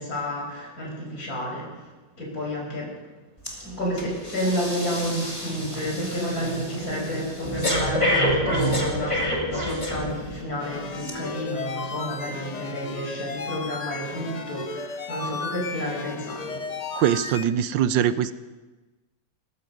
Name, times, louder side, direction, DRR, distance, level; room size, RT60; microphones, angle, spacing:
voice 1, 0.0-3.0 3.6-16.6, equal, 55° left, -2 dB, 6.1 m, -30 dB
Breathing, 3.5-3.6 4.0-10.4 11.0-11.1, left 1 dB, 15° left, 2.8 m, -28 dB
sound 1, 10.6-17.4, left 4 dB, 75° left, 0.3 m, -34 dB
voice 2, 16.9-18.3, right 10 dB, 80° right, 14 dB, 1.4 m, -22 dB
19.5 x 14.0 x 5.3 m, 1.2 s
omnidirectional pair, 2.0 m